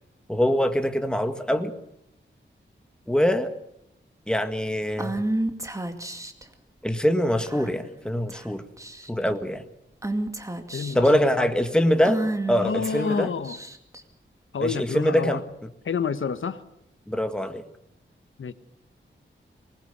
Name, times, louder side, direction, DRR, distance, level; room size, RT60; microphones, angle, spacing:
voice 1, 0.3-1.7 3.1-3.5 4.3-5.2 6.8-8.6 9.1-9.6 10.9-12.2 12.5-13.3 14.6-15.7 17.1-17.6, equal, 5° left, 7 dB, 1.8 m, -23 dB
Female speech woman speaking / Whispering, 5.0-6.4 7.5-7.9 8.3-8.5 8.8-9.3 10.0-11.1 12.0-14.0, right 1 dB, 15° right, 2.2 m, -30 dB
voice 2, 10.7-11.5 12.6-13.6 14.5-15.4 15.8-16.6 18.4-18.5, left 6 dB, 85° left, 12 dB, 1.2 m, -29 dB
25.0 x 20.0 x 6.9 m, 0.80 s
wide cardioid pair, 120°, 20 cm